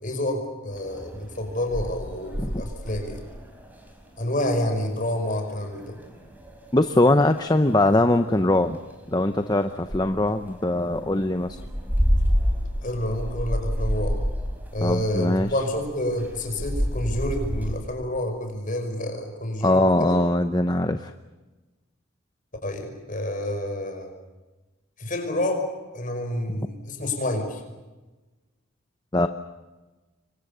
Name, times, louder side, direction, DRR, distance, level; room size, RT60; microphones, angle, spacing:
voice 1, 0.0-3.2 4.2-6.0 12.8-14.2 14.7-20.2 22.6-24.1 25.0-25.7 25.9-27.6, left 1 dB, 40° left, 4 dB, 5.1 m, -28 dB
sound 1, 0.7-17.8, equal, 10° right, 4.4 m, -30 dB
voice 2, 6.7-8.8 9.1-11.6 14.8-15.5 19.6-21.1 29.1-29.3, left 1 dB, 20° left, 8 dB, 0.7 m, -21 dB
27.5 x 23.5 x 6.8 m, 1.2 s
head